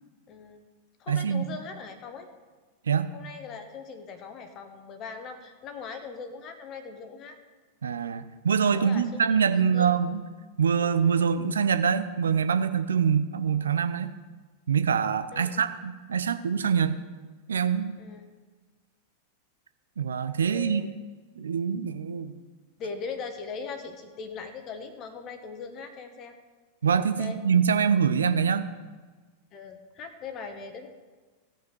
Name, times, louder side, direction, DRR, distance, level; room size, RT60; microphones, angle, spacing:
voice 1, 0.3-0.7 1.0-2.3 3.1-7.4 8.7-9.2 9.7-9.9 15.3-15.5 18.0-18.3 20.5-20.9 22.8-26.3 27.2-27.4 29.5-30.9, left 5 dB, 35° left, 7 dB, 1.2 m, -40 dB
voice 2, 1.1-1.5 2.9-3.1 7.8-10.2 10.6-14.1 14.7-17.0 17.5-17.9 20.0-20.9 21.4-22.4 26.8-28.7, right 7 dB, 70° right, 11 dB, 0.6 m, -25 dB
16.5 x 5.8 x 4.7 m, 1.4 s
figure-of-eight pair, 90°, 0 cm